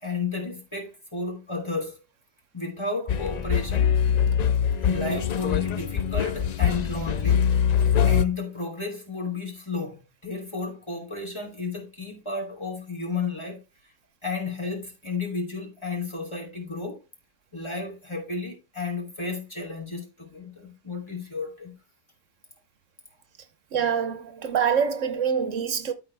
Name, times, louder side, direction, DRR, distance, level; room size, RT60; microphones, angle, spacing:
voice 1, 0.0-2.0 2.5-3.9 4.8-7.5 8.0-13.6 14.2-17.0 17.5-21.7, left 4 dB, 20° left, 3.1 m, -32 dB
sound 1, 3.1-8.3, left 8 dB, 50° left, 0.5 m, -23 dB
voice 2, 23.7-25.9, right 7 dB, 80° right, 1.3 m, -25 dB
12.5 x 4.9 x 3.4 m
omnidirectional pair, 1.3 m